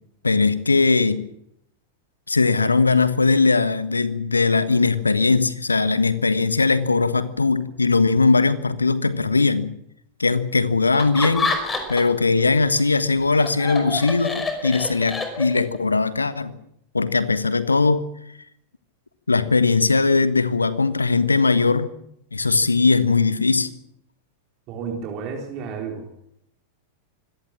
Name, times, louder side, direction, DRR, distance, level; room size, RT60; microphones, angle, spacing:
voice 1, 0.2-1.2 2.3-9.7 10.2-11.5 11.9-16.5 16.9-18.1 19.3-21.9 22.3-23.7, left 4 dB, 80° left, 14 dB, 1.4 m, -19 dB
Laughter, 10.9-12.2 12.6-15.8, left 3 dB, 15° left, 5.3 m, -27 dB
voice 2, 24.7-26.1, right 5 dB, 40° right, 1 dB, 4.0 m, -31 dB
24.5 x 17.5 x 7.4 m, 0.76 s
figure-of-eight pair, 90°, 0 cm